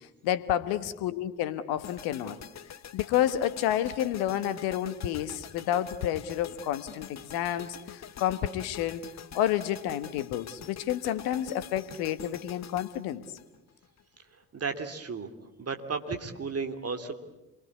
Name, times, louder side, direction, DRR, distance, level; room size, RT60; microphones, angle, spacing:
voice 1, 0.2-2.4 2.9-9.0 9.3-13.2, left 11 dB, 65° left, 13 dB, 1.4 m, -30 dB
sound 1, 1.8-14.0, left 9 dB, 40° left, 1.2 m, -46 dB
voice 2, 14.5-15.3 15.6-17.1, right 4 dB, 35° right, 6 dB, 2.8 m, -34 dB
27.5 x 22.5 x 8.4 m, 0.99 s
figure-of-eight pair, 40°, 40 cm